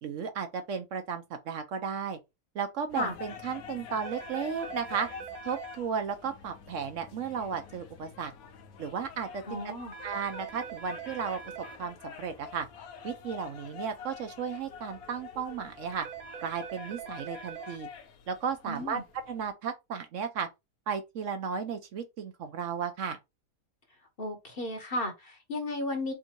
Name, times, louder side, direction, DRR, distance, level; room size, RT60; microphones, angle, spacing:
voice 1, 0.0-2.2 2.5-5.1 5.4-8.3 8.8-9.6 10.0-11.4 11.8-12.7 13.0-16.1 16.4-17.9 18.3-19.0 19.3-20.5 20.9-23.2, right 6 dB, 65° right, 0.9 m, -34 dB
sound 1, 2.9-19.5, left 7 dB, 80° left, 1.3 m, -47 dB
sound 2, 3.9-5.8 9.9-11.8 15.9-17.8, right 8 dB, 85° right, 1.1 m, -43 dB
voice 2, 9.5-9.9 18.7-19.0 24.2-26.1, left 2 dB, 45° left, 1.0 m, -34 dB
3.6 x 2.6 x 4.4 m
omnidirectional pair, 1.5 m